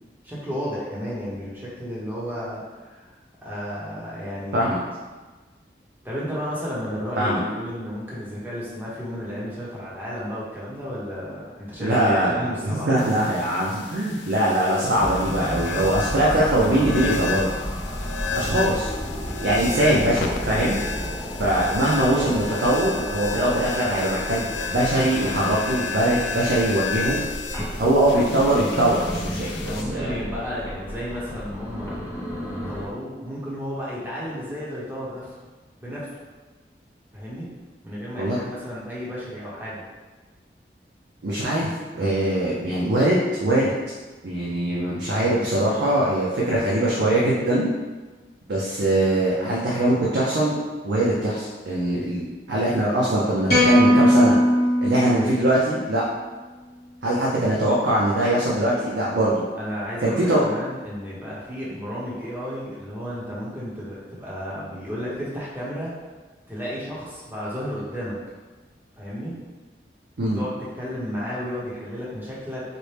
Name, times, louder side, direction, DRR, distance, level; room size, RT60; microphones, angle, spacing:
voice 1, 0.2-3.1 3.4-4.8 6.0-13.1 29.6-32.0 32.7-35.4 35.8-36.2 37.1-37.5 37.8-39.8 59.5-65.9 66.5-68.2 68.9-69.3 70.2-72.6, equal, 10° right, -8 dB, 0.8 m, -33 dB
voice 2, 11.8-17.5 18.3-18.9 19.4-20.8 21.4-27.3 27.8-29.5 29.9-30.1 38.2-38.4 41.2-41.7 41.9-43.7 44.2-47.7 48.5-50.6 50.8-54.4 54.8-56.0 57.0-59.4 60.0-60.4 70.2-70.4, right 1 dB, 80° right, -5 dB, 0.6 m, -22 dB
sound 1, 13.0-29.8, left 4 dB, 90° left, 0.3 m, -33 dB
sound 2, 14.9-32.9, equal, 15° left, 0.5 m, -32 dB
sound 3, 53.5-55.9, equal, 60° left, 1.1 m, -19 dB
4.2 x 2.1 x 3.3 m, 1.3 s
head